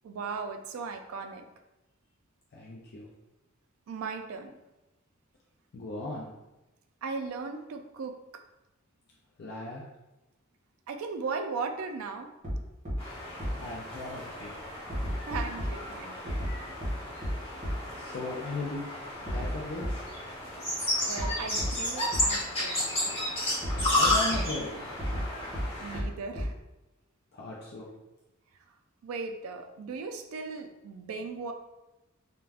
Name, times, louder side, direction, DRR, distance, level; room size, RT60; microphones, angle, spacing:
voice 1, 0.0-1.5 3.9-4.5 7.0-8.2 10.9-12.3 14.9-16.4 21.0-23.1 25.8-26.6 29.0-31.5, right 4 dB, 75° right, 6 dB, 0.3 m, -37 dB
voice 2, 2.5-3.1 5.7-6.3 9.4-9.8 13.6-14.5 17.9-18.8 19.3-20.0 23.8-24.9 27.3-27.9, left 2 dB, 50° left, -3 dB, 0.4 m, -37 dB
sound 1, 12.4-12.5 12.8-12.9 13.4-13.5 14.9-15.7 16.3-16.5 16.8-16.9 17.2-17.3 17.6-17.7 19.3-19.5 19.8-19.9 21.2-21.3 21.6-21.7 22.1-22.2 23.6-24.4 25.0-25.2 25.5-25.6 25.9-26.0 26.3-26.4, equal, 35° right, 0.9 m, -33 dB
sound 2, 13.0-26.0, left 1 dB, 30° left, 1.3 m, -32 dB
2.4 x 2.2 x 3.3 m, 0.99 s
head